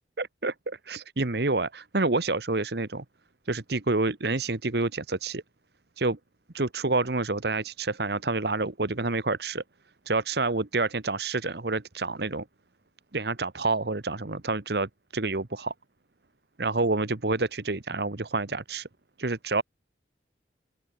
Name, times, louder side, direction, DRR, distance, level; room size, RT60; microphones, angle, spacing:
voice 1, 0.2-3.0 3.4-5.4 6.0-6.2 6.5-9.6 10.0-12.4 13.1-15.7 16.6-18.9 19.2-19.6, right 3 dB, 60° right, 1.2 m, -28 dB
open air
head